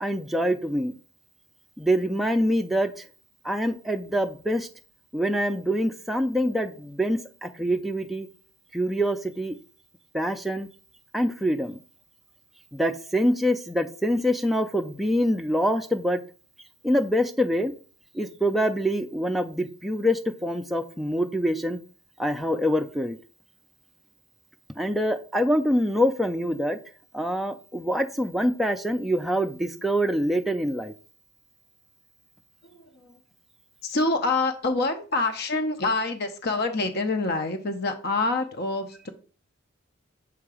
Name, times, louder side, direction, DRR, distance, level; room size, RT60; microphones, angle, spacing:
voice 1, 0.0-0.9 1.8-3.0 3.4-4.7 5.1-8.3 8.7-9.5 10.1-10.7 11.1-11.8 12.7-16.2 16.8-17.7 18.1-21.8 22.2-23.2 24.7-26.8 27.1-30.9, equal, ahead, 3 dB, 0.4 m, -25 dB
voice 2, 32.6-33.2 33.8-39.1, left 3 dB, 50° left, 5 dB, 0.7 m, -26 dB
6.9 x 2.8 x 4.8 m, 0.38 s
head